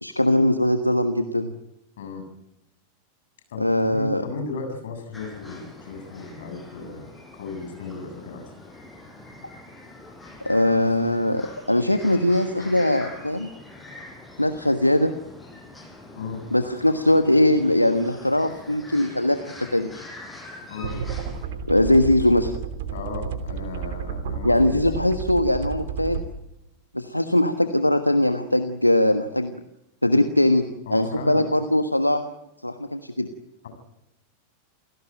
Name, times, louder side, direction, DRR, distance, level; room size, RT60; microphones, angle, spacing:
voice 1, 0.0-1.5 3.6-4.2 10.4-13.5 14.4-15.1 16.5-19.4 19.7-19.9 21.7-22.5 24.4-26.2 26.9-29.6 30.0-30.6 30.9-32.2 32.6-33.3, left 1 dB, 85° left, 8 dB, 1.3 m, -21 dB
voice 2, 2.0-2.3 3.5-7.1 7.3-8.5 16.1-16.4 20.7-21.0 22.9-24.8 30.9-31.5 33.6-33.7, left 4 dB, 60° left, 6 dB, 7.6 m, -35 dB
sound 1, 5.1-21.5, left 2 dB, 10° left, 6.4 m, -44 dB
sound 2, 20.8-26.2, right 6 dB, 55° right, 3.2 m, -31 dB
28.5 x 17.5 x 9.1 m, 0.88 s
figure-of-eight pair, 90°, 0 cm